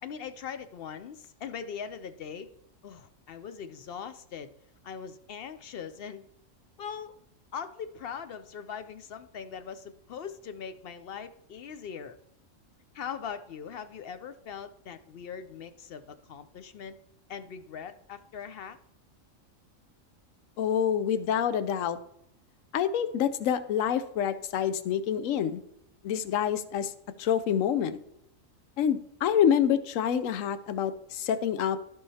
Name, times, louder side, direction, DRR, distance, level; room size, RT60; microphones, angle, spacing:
voice 1, 0.0-2.5 2.8-4.5 4.8-6.2 6.8-7.2 7.5-12.2 12.9-17.0 17.3-18.8, left 7 dB, 60° left, 11 dB, 0.7 m, -41 dB
voice 2, 20.6-22.0 22.7-25.6 26.0-26.9 27.2-28.0 28.8-31.8, left 9 dB, 75° left, 12 dB, 1.0 m, -27 dB
14.5 x 5.6 x 2.8 m, 0.76 s
omnidirectional pair, 1.4 m